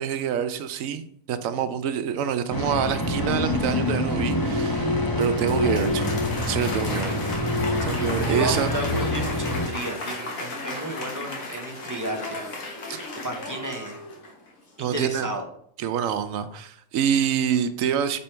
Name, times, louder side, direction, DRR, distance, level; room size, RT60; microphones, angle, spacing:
voice 1, 0.0-6.1 6.4-7.2 7.8-8.7 12.9-13.0 14.8-15.3 15.8-18.2, right 8 dB, 80° right, 10 dB, 1.0 m, -26 dB
sound 1, 2.5-9.7, left 1 dB, 20° left, 0.7 m, -26 dB
Applause, 4.9-14.5, left 2 dB, 80° left, 1.6 m, -35 dB
voice 2, 8.3-12.8 13.2-14.0 14.8-15.5, right 1 dB, 20° right, 2 dB, 0.6 m, -32 dB
5.3 x 4.3 x 4.4 m, 0.67 s
omnidirectional pair, 1.4 m